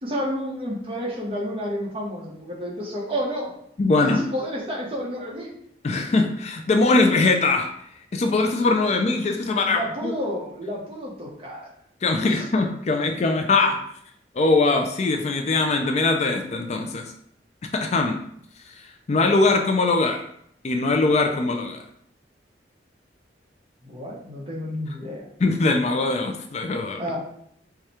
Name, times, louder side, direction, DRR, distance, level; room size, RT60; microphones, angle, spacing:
voice 1, 0.0-3.5 4.0-5.5 9.7-11.7 23.8-25.3 27.0-27.2, equal, 30° right, -2 dB, 1.1 m, -30 dB
voice 2, 3.8-4.2 5.8-7.7 8.1-10.1 12.0-13.8 14.4-17.1 17.7-18.2 19.1-20.2 20.6-21.8 25.4-27.0, left 3 dB, 40° left, 4 dB, 0.4 m, -21 dB
4.8 x 2.3 x 4.2 m, 0.70 s
head